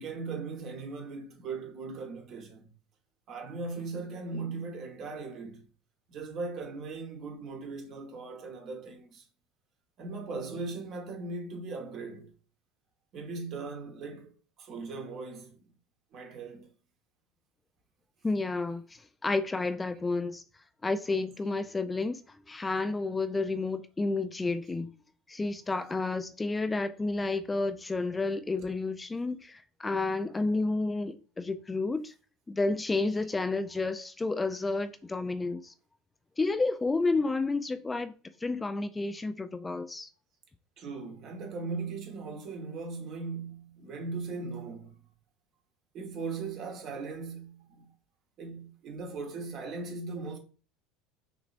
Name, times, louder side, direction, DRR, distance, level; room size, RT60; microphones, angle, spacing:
voice 1, 0.0-2.7 3.3-5.7 6.1-9.2 10.0-12.3 13.1-15.6 16.1-16.7 33.1-33.2 40.8-45.0 45.9-47.9 48.4-50.4, right 4 dB, 50° right, 1.3 m, -39 dB
voice 2, 18.2-20.4 20.8-24.9 25.3-32.1 32.5-35.7 36.4-38.1 38.4-40.1, left 3 dB, 15° left, 0.4 m, -31 dB
6.0 x 3.0 x 2.5 m
hypercardioid pair, 75°, 0 cm